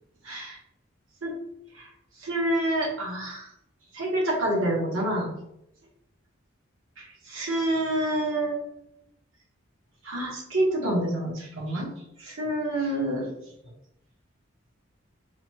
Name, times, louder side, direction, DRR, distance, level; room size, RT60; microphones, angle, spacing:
voice 1, 0.2-0.6 1.2-1.4 1.8-1.9 2.2-3.5 3.9-5.3 7.0-8.6 10.0-11.9 12.2-13.3, right 1 dB, 85° right, -2 dB, 1.2 m, -27 dB
5.0 x 2.3 x 2.9 m, 0.78 s
head